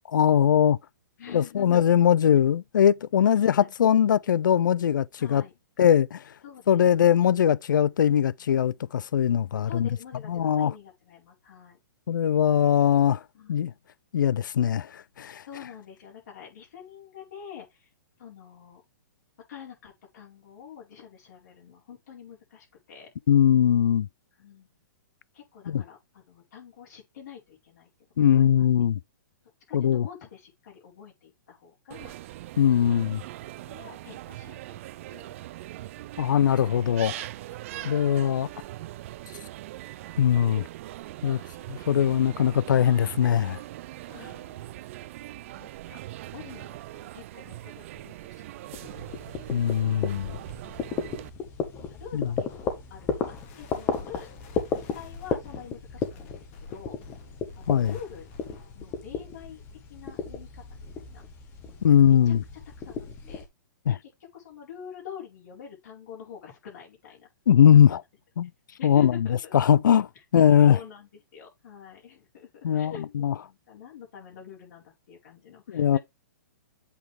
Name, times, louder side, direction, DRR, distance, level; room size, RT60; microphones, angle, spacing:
voice 1, 0.1-0.8 1.3-5.4 5.8-6.2 6.7-9.9 10.3-10.7 12.1-13.2 13.5-13.7 14.1-15.4 23.3-24.1 25.7-25.8 28.2-29.0 29.7-30.1 32.6-33.2 36.2-37.3 37.8-38.5 40.2-40.6 41.2-41.4 41.7-43.6 49.5-50.4 52.1-52.3 57.7-57.9 61.8-62.4 63.9-64.0 67.5-68.0 68.4-68.5 68.8-69.1 69.5-70.1 70.3-70.8 72.6-73.3 75.7-76.0, left 9 dB, 80° left, 0.5 m, -21 dB
voice 2, 1.2-1.8 3.2-3.7 5.2-5.5 6.4-6.8 9.6-11.8 13.3-13.8 15.5-17.9 18.2-18.8 19.5-23.1 24.4-24.7 25.3-27.9 28.2-28.6 29.7-32.2 32.9-33.4 33.7-34.8 35.0-35.3 37.7-38.2 41.4-42.1 42.4-43.1 44.0-44.8 45.2-46.0 46.3-48.8 51.9-54.3 54.9-57.0 57.5-58.3 58.7-59.6 59.9-61.3 61.6-62.3 62.8-63.4 64.0-67.3 67.7-68.0 68.8-69.7 70.6-76.0, left 8 dB, 60° left, 4.8 m, -46 dB
sound 1, 31.9-51.3, right 15 dB, 45° right, 0.5 m, -41 dB
sound 2, 48.7-63.5, left 5 dB, 25° left, 1.5 m, -35 dB
sound 3, 53.3-58.8, left 3 dB, 40° left, 2.6 m, -49 dB
8.3 x 4.7 x 3.5 m
hypercardioid pair, 150°, 10 cm